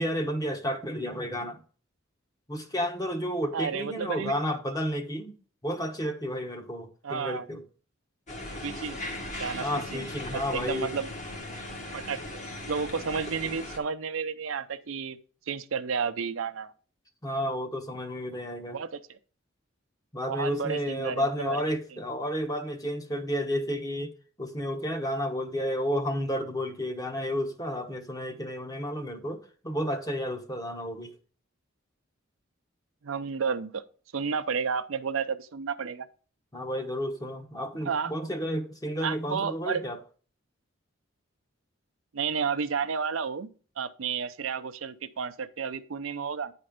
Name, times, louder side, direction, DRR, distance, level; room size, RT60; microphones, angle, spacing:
voice 1, 0.0-1.6 2.5-5.3 5.6-7.6 9.6-10.9 17.2-18.8 20.1-24.1 24.4-31.1 36.5-40.0, equal, 20° left, 1.1 m, -31 dB
voice 2, 3.5-4.3 7.0-7.4 8.6-9.0 9.4-10.1 10.3-11.1 11.9-12.4 12.7-15.2 15.5-16.7 18.7-19.2 20.3-21.6 33.0-33.8 34.1-36.1 37.8-38.1 39.0-39.8 42.1-43.5 43.8-46.5, right 6 dB, 75° right, 0.6 m, -31 dB
sound 1, 8.3-13.8, left 1 dB, 40° left, 1.6 m, -38 dB
9.5 x 4.3 x 5.1 m
head